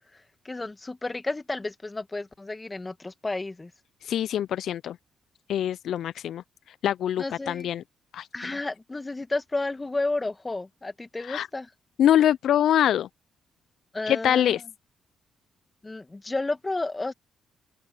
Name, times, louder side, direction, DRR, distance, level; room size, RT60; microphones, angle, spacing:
voice 1, 0.4-3.7 7.2-7.7 8.3-11.7 13.9-14.6 15.8-17.1, left 2 dB, 25° left, 2.2 m, -31 dB
voice 2, 4.0-5.0 5.5-6.4 6.8-7.8 8.1-8.5 11.2-11.5 12.0-13.1 14.1-14.6, left 10 dB, 70° left, 0.6 m, -24 dB
open air
hypercardioid pair, 50°, 0 cm